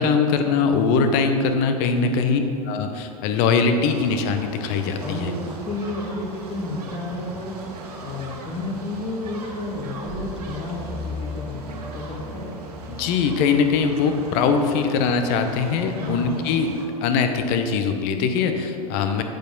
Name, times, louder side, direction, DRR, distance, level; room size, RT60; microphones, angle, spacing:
voice 1, 0.0-2.4 2.7-5.3 12.9-19.2, left 5 dB, 50° left, 7 dB, 0.8 m, -22 dB
voice 2, 1.9-2.6 5.0-7.6 8.0-12.7 16.0-16.5, left 2 dB, 30° left, -1 dB, 1.4 m, -32 dB
sound 1, 3.8-16.9, right 3 dB, 85° right, 1.3 m, -40 dB
sound 2, 9.6-14.3, left 2 dB, 60° right, 1.5 m, -37 dB
7.8 x 4.6 x 5.2 m, 2.6 s
hypercardioid pair, 120°, 19 cm